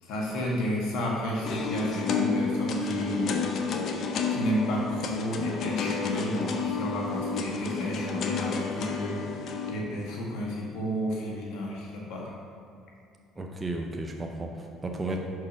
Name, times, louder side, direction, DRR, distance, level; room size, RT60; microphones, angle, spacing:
voice 1, 0.0-3.4 4.3-12.4, equal, 75° left, -2 dB, 1.6 m, -31 dB
sound 1, 1.4-9.7, left 4 dB, 55° left, 0.7 m, -31 dB
voice 2, 13.4-15.2, right 2 dB, 20° right, 1 dB, 0.7 m, -34 dB
5.4 x 4.8 x 5.9 m, 2.5 s
supercardioid pair, 80°, 0 cm